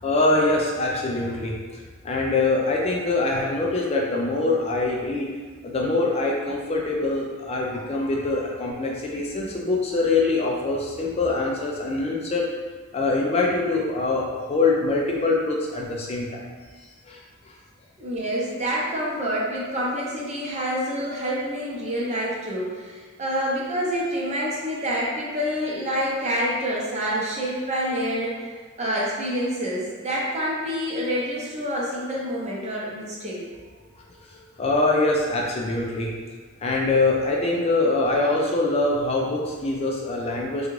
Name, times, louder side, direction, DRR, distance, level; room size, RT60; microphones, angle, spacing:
voice 1, 0.0-1.5 2.0-5.3 5.6-12.5 12.9-16.4 17.1-17.2 17.5-17.6 34.3-36.1 36.6-40.7, left 2 dB, 30° left, -2 dB, 0.4 m, -24 dB
voice 2, 18.0-28.4 28.8-33.4, equal, 35° right, -5 dB, 0.7 m, -27 dB
3.5 x 2.3 x 3.1 m, 1.5 s
head